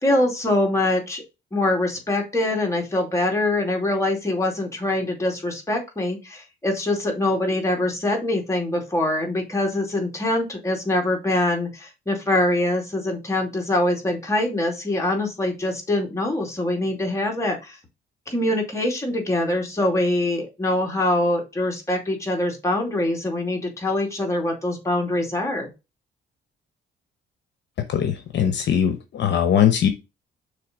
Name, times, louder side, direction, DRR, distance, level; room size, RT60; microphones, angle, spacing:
voice 1, 0.0-1.2 1.5-17.8 18.3-25.7, left 1 dB, 15° left, 2.5 m, -24 dB
voice 2, 27.9-29.9, left 9 dB, 60° left, 0.9 m, -20 dB
6.7 x 3.3 x 5.0 m
cardioid pair, 90°, 20 cm